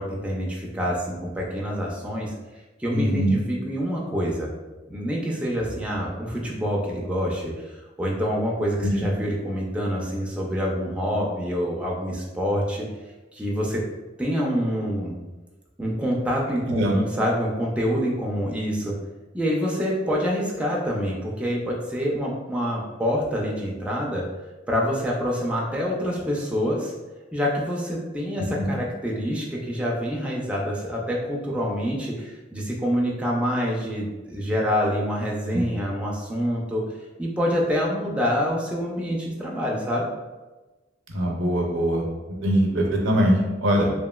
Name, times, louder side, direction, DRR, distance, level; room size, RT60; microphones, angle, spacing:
voice 1, 0.0-2.3 2.8-4.5 4.9-12.9 13.3-13.8 14.2-15.2 15.8-18.9 19.3-24.2 24.7-26.9 27.3-36.8 37.2-40.1, equal, 5° right, -3 dB, 0.4 m, -26 dB
voice 2, 2.9-3.4 8.8-8.9 16.7-16.9 28.4-28.7 35.5-35.6 41.1-42.1 42.4-43.9, equal, 80° right, 0 dB, 0.6 m, -22 dB
2.9 x 2.7 x 2.2 m, 1.2 s
head